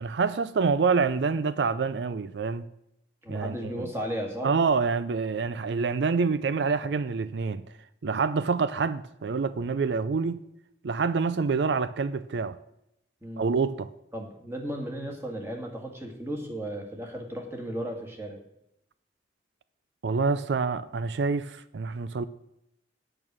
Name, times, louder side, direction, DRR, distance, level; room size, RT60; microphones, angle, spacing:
voice 1, 0.0-2.7 3.3-3.9 4.4-7.7 8.0-10.4 10.8-12.6 13.4-13.9 20.0-22.2, right 5 dB, 85° right, 0.5 m, -27 dB
voice 2, 3.2-4.5 13.2-13.4 14.1-18.4, equal, 15° right, 1.8 m, -35 dB
8.9 x 8.7 x 6.1 m
head